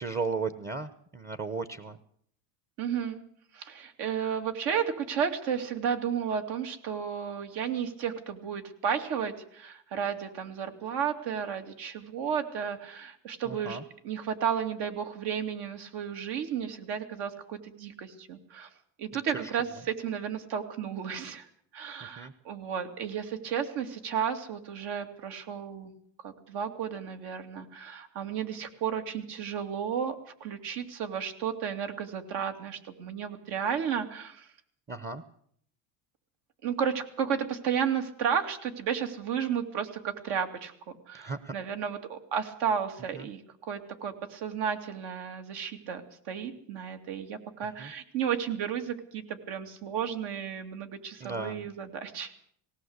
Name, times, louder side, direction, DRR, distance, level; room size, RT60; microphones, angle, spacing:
voice 1, 0.0-2.0 13.5-13.8 19.1-19.2 22.0-22.3 34.9-35.2 41.1-41.5 43.1-43.2 47.8-47.9 51.2-51.7, right 4 dB, 25° right, 12 dB, 1.0 m, -35 dB
voice 2, 2.8-3.2 3.5-13.8 14.0-18.7 19.0-21.5 21.7-25.9 26.2-34.5 36.6-46.0 46.3-52.3, right 7 dB, 70° right, 6 dB, 2.8 m, -33 dB
19.0 x 17.5 x 8.1 m, 0.66 s
cardioid pair, 130°, 41 cm